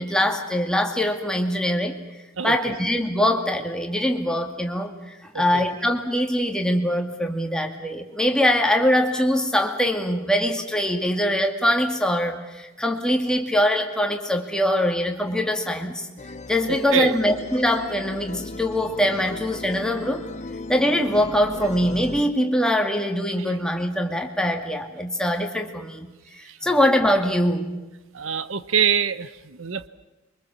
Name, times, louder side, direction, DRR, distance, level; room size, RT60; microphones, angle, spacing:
voice 1, 0.0-2.0 2.4-16.1 16.5-20.3 20.7-26.1 26.3-27.7, equal, 5° left, 3 dB, 2.3 m, -23 dB
sound 1, 16.2-22.2, left 2 dB, 35° left, 0.8 m, -36 dB
voice 2, 16.7-17.2 26.4-26.8 28.1-29.9, right 7 dB, 70° right, 14 dB, 0.9 m, -25 dB
27.0 x 24.0 x 7.3 m, 1.1 s
head